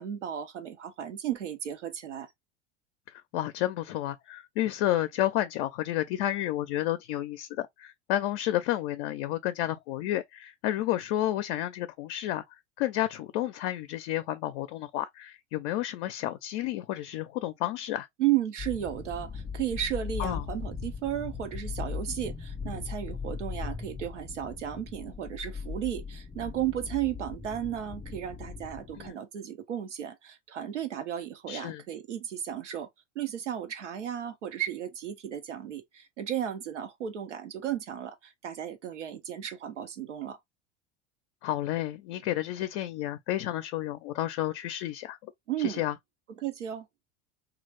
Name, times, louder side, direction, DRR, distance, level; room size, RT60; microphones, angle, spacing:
voice 1, 0.0-2.3 18.2-32.9 33.1-40.4 45.5-45.8 46.4-46.9, right 11 dB, 85° right, 0.9 m, -34 dB
voice 2, 3.3-18.1 20.2-20.4 29.0-29.1 31.5-31.8 41.4-45.2 45.6-45.9, left 14 dB, 55° left, 0.5 m, -31 dB
sound 1, 18.6-29.1, left 5 dB, 10° left, 0.5 m, -39 dB
3.0 x 2.4 x 3.2 m
hypercardioid pair, 80°, 35 cm